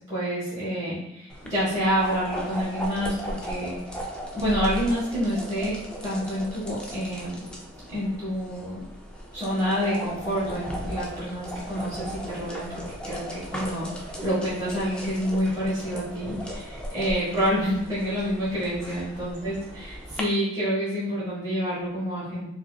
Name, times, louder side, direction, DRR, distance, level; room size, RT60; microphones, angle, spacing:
voice 1, 0.1-3.8 4.3-5.8 6.0-7.4 7.9-8.8 9.3-22.5, equal, 20° right, -10 dB, 1.2 m, -28 dB
sound 1, 1.3-20.2, equal, 5° left, 0.4 m, -37 dB
4.8 x 2.7 x 2.2 m, 0.86 s
head